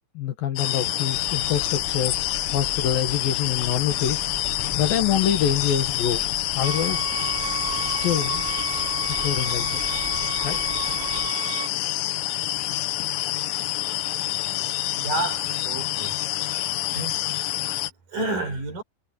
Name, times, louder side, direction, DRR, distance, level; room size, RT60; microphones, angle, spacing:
voice 1, 0.1-2.2 2.5-4.2 4.5-6.2 6.5-7.1 7.8-8.5 9.1-9.8 10.4-10.6, left 9 dB, 60° left, 2.6 m, -25 dB
sound 1, 0.6-17.9, left 15 dB, 80° left, 3.7 m, -27 dB
sound 2, 1.1-11.3, left 1 dB, 15° left, 5.6 m, -40 dB
sound 3, 6.6-11.7, right 13 dB, 90° right, 2.1 m, -33 dB
voice 2, 15.0-16.2 16.9-17.2 18.1-18.8, right 2 dB, 45° right, 6.6 m, -30 dB
omnidirectional pair, 5.8 m